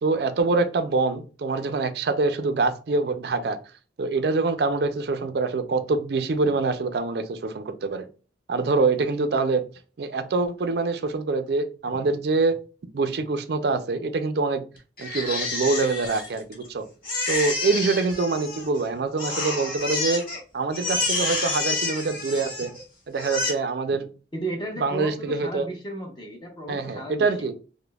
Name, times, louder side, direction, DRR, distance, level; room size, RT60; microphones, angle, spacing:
voice 1, 0.0-3.6 4.0-8.1 8.5-9.7 10.0-12.6 12.9-14.6 15.0-16.9 17.3-20.3 20.5-22.7 23.1-24.1 24.8-25.7 26.7-27.5, right 3 dB, 60° right, 10 dB, 0.4 m, -25 dB
Crying sobbing, 15.0-16.7 17.0-18.8 19.2-20.4 20.7-22.8 23.2-23.5, left 3 dB, 55° left, 1.4 m, -29 dB
voice 2, 24.3-27.5, right 2 dB, 25° left, 1 dB, 0.9 m, -34 dB
5.0 x 2.1 x 2.2 m, 0.37 s
head